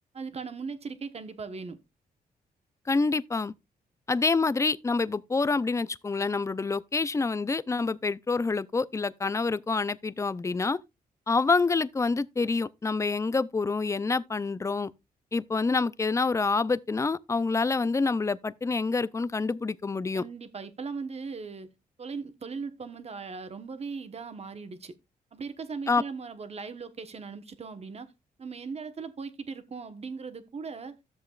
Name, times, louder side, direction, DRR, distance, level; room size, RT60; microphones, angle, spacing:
voice 1, 0.1-1.8 20.1-21.7 22.0-24.9 25.3-28.1 28.4-31.0, right 5 dB, 40° right, 1.2 m, -38 dB
voice 2, 2.9-3.5 4.1-10.8 11.3-14.9 15.3-20.2 25.9-26.0, left 4 dB, 20° left, 0.4 m, -27 dB
13.0 x 7.4 x 2.4 m
cardioid pair, 95°, 16 cm